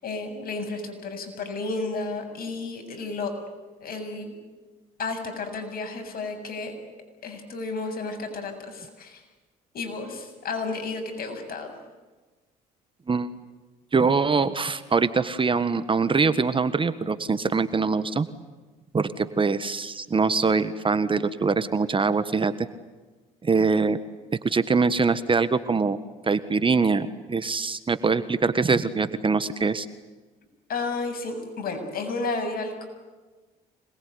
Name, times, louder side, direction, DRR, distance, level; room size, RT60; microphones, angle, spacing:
voice 1, 0.0-3.3 3.8-4.3 5.0-6.7 7.2-9.2 9.7-11.7 30.7-32.9, left 3 dB, 55° left, 5 dB, 7.7 m, -32 dB
voice 2, 13.9-18.3 18.9-22.7 23.4-24.0 24.4-26.0 26.3-29.9, right 4 dB, 30° right, 12 dB, 1.5 m, -23 dB
26.5 x 21.0 x 9.7 m, 1.3 s
supercardioid pair, 75°, 18 cm